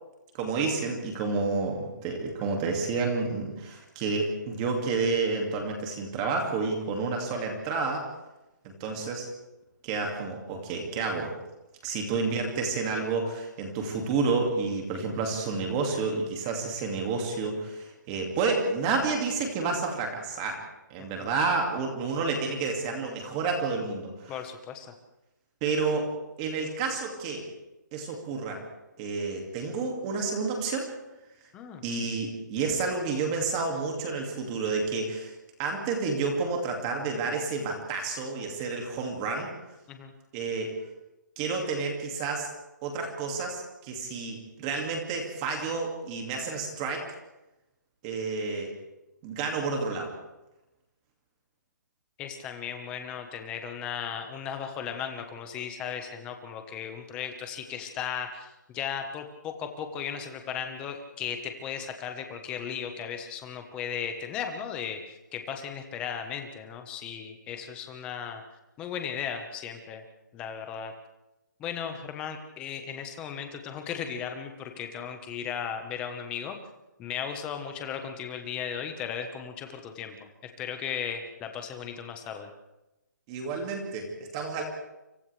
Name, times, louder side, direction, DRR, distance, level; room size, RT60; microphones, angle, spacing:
voice 1, 0.3-8.1 8.8-9.3 9.8-11.3 11.8-20.6 20.9-24.3 25.6-26.1 26.4-27.5 27.9-28.6 29.0-30.9 31.8-35.3 35.6-39.5 40.3-40.8 41.4-42.5 42.8-47.1 48.0-48.7 49.2-50.1 83.3-84.6, right 4 dB, 15° right, 2 dB, 2.3 m, -30 dB
voice 2, 24.3-24.9 31.5-31.8 39.9-40.1 52.2-68.4 68.8-70.0 70.3-70.9 71.6-76.6 77.0-80.1 80.4-82.5, left 8 dB, 10° left, 6 dB, 1.2 m, -36 dB
29.5 x 26.0 x 3.4 m, 0.97 s
hypercardioid pair, 175°, 10 cm